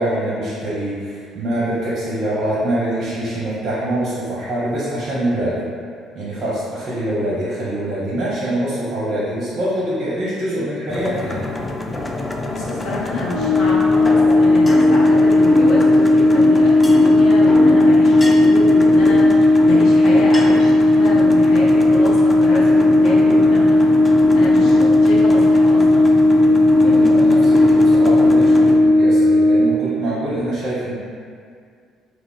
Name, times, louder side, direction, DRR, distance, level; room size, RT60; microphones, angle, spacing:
voice 1, 0.0-5.6 6.1-11.5 24.8-24.9 26.8-30.9, right 1 dB, 35° right, -8 dB, 0.7 m, -24 dB
sound 1, 10.9-28.8, left 1 dB, 20° left, 0.3 m, -24 dB
voice 2, 12.5-23.8 24.1-24.8 25.0-26.1, left 2 dB, 55° left, -6 dB, 0.6 m, -27 dB
Brass instrument, 13.3-29.7, left 2 dB, 85° right, 0.4 m, -14 dB
2.4 x 2.3 x 3.6 m, 2.2 s
figure-of-eight pair, 50°, 0 cm